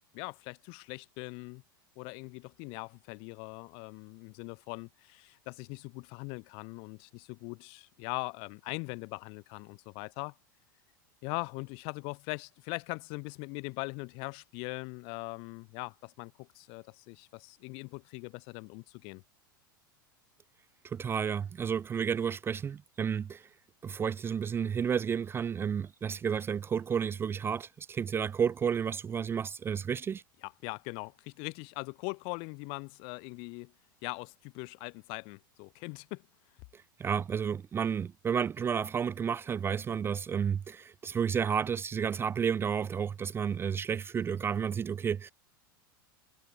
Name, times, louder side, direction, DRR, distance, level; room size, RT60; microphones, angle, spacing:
voice 1, 0.1-1.6 1.9-10.4 11.2-19.2 30.4-33.7 34.0-36.3, left 33 dB, 50° left, 1.5 m, -41 dB
voice 2, 20.8-23.5 23.8-30.2 36.7-45.3, right 7 dB, 20° right, 0.5 m, -31 dB
figure-of-eight pair, 85°, 11 cm